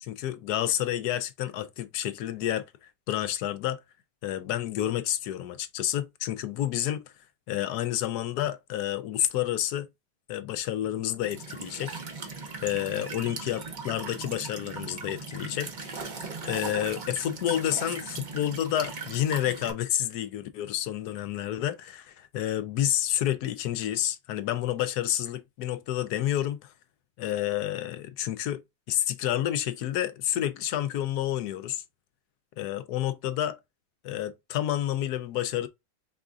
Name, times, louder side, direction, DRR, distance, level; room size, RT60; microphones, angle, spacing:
voice 1, 0.0-3.8 4.2-7.0 7.5-9.9 10.3-11.9 12.6-15.7 16.0-16.1 16.4-26.6 27.2-28.6 28.9-31.8 32.6-33.6 34.0-35.7, left 12 dB, 70° left, 1.0 m, -29 dB
Walk footsteps / Chirp tweet / Stream, 11.2-19.7, right 4 dB, 40° right, 0.7 m, -38 dB
4.8 x 3.6 x 2.4 m
omnidirectional pair, 1.9 m